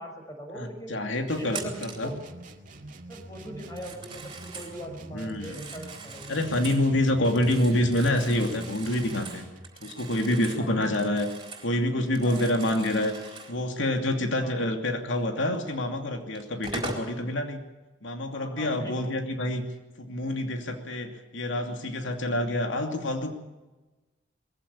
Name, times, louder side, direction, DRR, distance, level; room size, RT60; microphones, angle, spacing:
voice 1, 0.0-0.9 1.4-2.2 3.1-6.6 10.6-11.0 12.2-12.5 14.4-14.6 18.3-19.1, equal, 20° left, 2 dB, 5.9 m, -41 dB
voice 2, 0.5-2.1 5.1-5.6 6.3-9.5 9.8-11.3 11.6-13.1 13.5-17.6 18.0-19.6 20.0-23.3, left 1 dB, 90° left, 4 dB, 2.6 m, -27 dB
sound 1, 1.3-9.7, right 2 dB, 45° right, 2.3 m, -45 dB
Telephone, 1.5-2.1 3.6-4.8 5.3-6.9 7.2-11.7 12.0-13.6 15.7-15.8 16.3-17.1, right 4 dB, 25° right, 4.3 m, -41 dB
21.5 x 15.5 x 8.7 m, 1.1 s
head